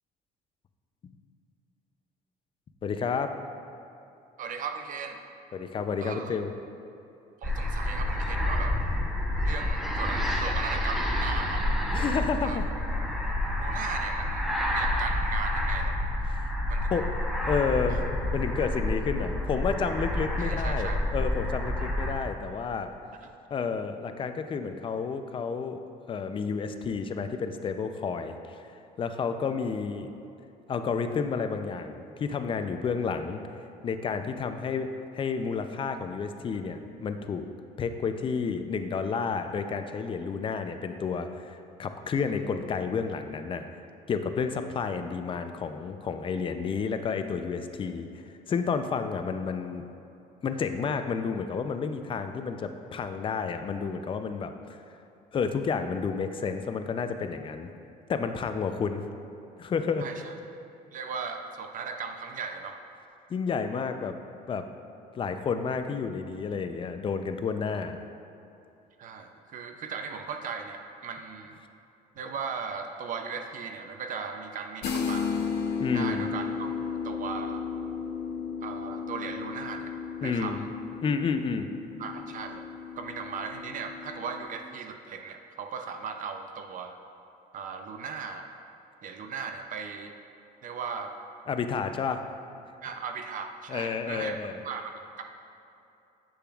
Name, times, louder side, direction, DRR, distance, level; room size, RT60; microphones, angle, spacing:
voice 1, 2.8-3.4 5.5-6.5 11.9-12.6 16.3-16.5 16.9-17.1 17.5-18.0 18.3-22.9 23.5-25.8 26.1-28.3 29.0-30.1 30.7-33.4 33.8-37.4 37.8-43.7 44.1-48.1 48.5-49.9 50.4-54.5 55.3-57.7 58.1-59.0 59.6-60.1 63.3-64.1 64.5-64.7 65.1-68.0 75.8-76.3 80.2-80.6 81.0-81.7 91.5-92.2 93.7-94.5, left 5 dB, 30° left, 8 dB, 0.4 m, -30 dB
voice 2, 4.4-5.2 6.0-6.4 7.4-8.8 9.4-11.7 12.4-12.6 13.6-16.0 16.7-16.9 17.9-18.0 20.4-21.0 23.2-23.3 60.0-60.3 60.9-62.8 69.0-71.6 72.2-75.4 75.9-76.7 77.0-77.6 78.6-80.7 82.0-82.6 83.0-87.0 87.5-88.5 89.0-90.1 90.6-91.1 92.8-94.4 94.6-94.9 95.2-95.3, right 6 dB, 50° right, 5 dB, 0.5 m, -37 dB
sound 1, 7.4-22.2, left 1 dB, ahead, 0.8 m, -29 dB
sound 2, 74.8-84.4, left 6 dB, 75° left, 0.6 m, -34 dB
7.8 x 6.7 x 2.3 m, 2.8 s
cardioid pair, 110°, 17 cm